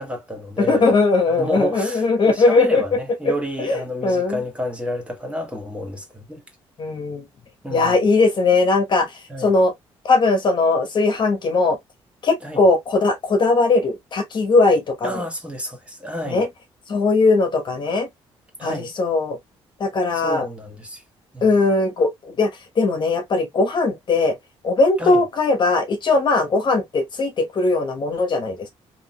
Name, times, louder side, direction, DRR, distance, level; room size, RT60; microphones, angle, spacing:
voice 1, 0.0-0.9 1.4-6.4 7.6-8.1 9.3-9.6 12.4-12.6 15.0-16.4 18.6-18.9 20.1-21.0 21.3-21.6 25.0-25.2, equal, 10° right, 1.5 m, -30 dB
voice 2, 0.6-2.8 3.6-4.4 6.8-7.2 7.7-9.7 10.0-11.8 12.2-15.2 16.3-16.5 16.9-18.1 18.6-19.4 19.8-20.4 21.4-22.5 22.8-24.3 24.6-28.7, left 3 dB, 45° left, 1.1 m, -19 dB
3.7 x 2.7 x 2.2 m
cardioid pair, 90°, 11 cm